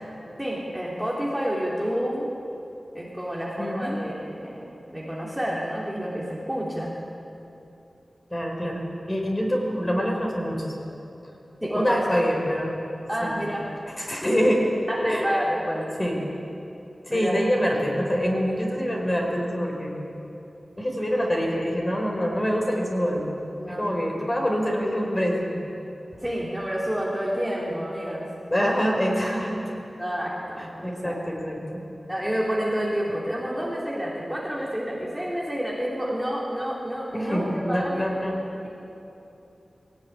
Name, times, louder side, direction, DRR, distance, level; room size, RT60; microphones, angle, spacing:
voice 1, 0.4-2.3 2.9-6.9 11.6-12.2 13.1-13.7 14.1-14.5 14.9-15.8 17.1-17.4 23.6-23.9 26.2-28.3 30.0-31.2 32.1-38.3, equal, 5° right, -5 dB, 3.4 m, -29 dB
voice 2, 3.6-3.9 8.3-10.8 11.6-12.7 13.2-13.4 14.0-14.6 15.0-15.3 16.0-16.2 17.1-19.9 20.8-25.6 28.5-29.6 30.6-31.8 37.1-38.3, equal, 20° left, -1 dB, 4.9 m, -25 dB
21.0 x 18.5 x 9.9 m, 2.9 s
wide cardioid pair, 90°, 0 cm